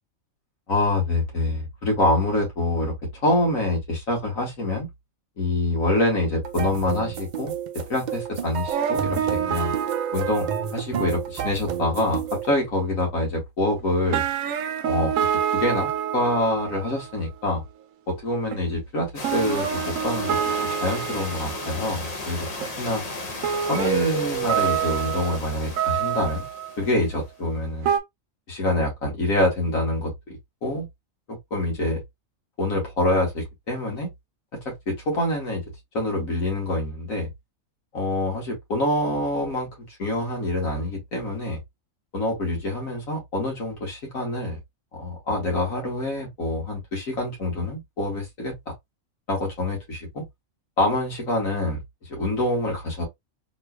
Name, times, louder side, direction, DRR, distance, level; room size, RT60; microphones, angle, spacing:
voice 1, 0.7-4.9 5.4-7.5 7.9-9.2 9.5-9.7 10.1-14.2 14.8-15.2 15.5-17.6 18.1-22.5 22.8-23.0 23.7-26.5 26.8-27.9 28.5-30.9 31.3-32.0 32.6-34.1 34.5-35.6 35.9-37.3 37.9-41.6 42.1-44.6 44.9-48.5 49.3-50.2 50.8-51.8 52.1-53.0, left 1 dB, 90° left, 2.0 m, -26 dB
sound 1, 6.4-12.5, right 8 dB, 60° right, 0.4 m, -30 dB
sound 2, 8.7-10.9 13.8-13.9 14.1-17.2 18.5-18.6 19.2-22.1 22.6-22.7 23.4-27.0 27.8-28.0, right 9 dB, 80° right, 1.0 m, -27 dB
sound 3, 19.1-27.1, left 2 dB, 35° left, 0.7 m, -35 dB
3.7 x 3.1 x 2.2 m
omnidirectional pair, 1.4 m